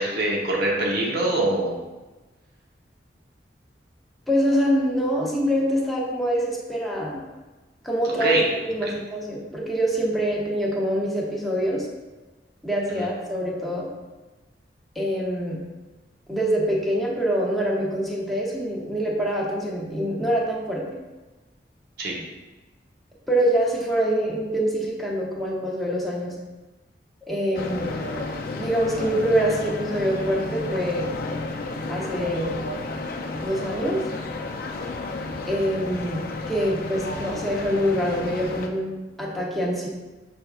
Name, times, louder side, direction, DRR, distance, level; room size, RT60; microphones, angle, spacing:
voice 1, 0.0-1.8 8.2-8.4 8.8-8.9 13.0-13.1 22.0-22.2, right 2 dB, 60° right, -2 dB, 0.9 m, -23 dB
voice 2, 4.3-7.2 7.8-11.9 12.6-13.9 14.9-15.6 16.3-20.8 23.3-26.3 27.3-27.9 28.5-31.1 31.9-32.6 33.4-34.0 35.5-38.9 39.2-39.9, equal, ahead, -4 dB, 0.8 m, -25 dB
sound 1, 27.5-38.7, left 2 dB, 55° left, 0.4 m, -32 dB
6.1 x 3.5 x 2.4 m, 1.2 s
head